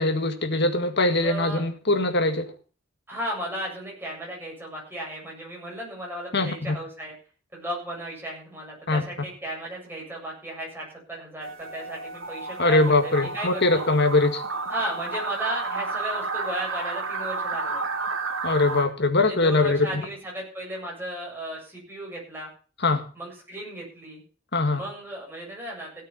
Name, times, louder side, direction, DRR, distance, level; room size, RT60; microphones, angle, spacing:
voice 1, 0.0-2.5 6.3-6.8 8.9-9.1 12.6-14.4 18.4-20.0 22.8-23.0 24.5-24.8, left 2 dB, 55° left, 2.0 m, -22 dB
voice 2, 1.2-1.6 3.1-7.1 7.5-13.8 14.7-17.8 19.2-22.5 23.2-24.2 24.7-26.1, right 1 dB, 10° right, 7.5 m, -35 dB
sound 1, 11.4-18.8, right 3 dB, 75° right, 2.3 m, -31 dB
16.5 x 8.7 x 5.6 m
head